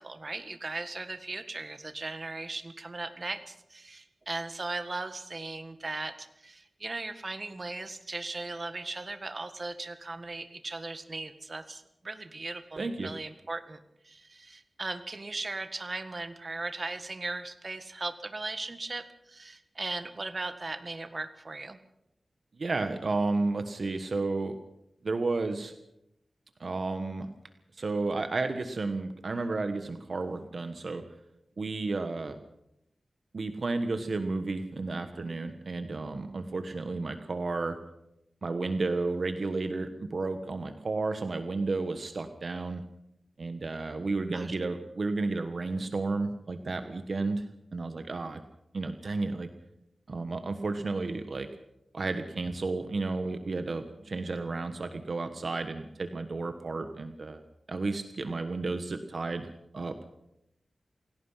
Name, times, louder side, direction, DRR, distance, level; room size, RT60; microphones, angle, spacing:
voice 1, 0.0-21.8 44.3-44.6, right 3 dB, 40° right, 9 dB, 1.7 m, -38 dB
voice 2, 12.8-13.1 22.5-24.6 25.0-25.7 26.6-27.3 27.7-31.0 31.6-32.4 33.3-37.8 38.4-42.8 43.4-47.4 47.7-48.4 48.7-49.5 50.1-51.5 51.9-57.4 57.7-60.0, right 3 dB, 60° right, 8 dB, 1.4 m, -32 dB
27.5 x 17.5 x 5.8 m, 0.83 s
wide cardioid pair, 95°, 0 cm